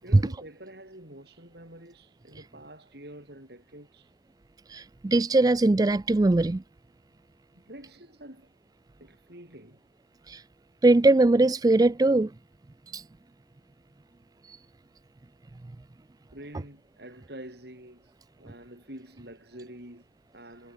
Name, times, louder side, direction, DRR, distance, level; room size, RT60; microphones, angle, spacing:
voice 1, 0.0-4.1 7.7-8.6 9.0-9.8 16.3-20.7, right 1 dB, 55° right, 6.4 m, -47 dB
voice 2, 4.7-6.6 10.3-10.4 10.8-12.3 12.9-13.0 14.5-14.6, right 2 dB, 20° right, 0.3 m, -21 dB
head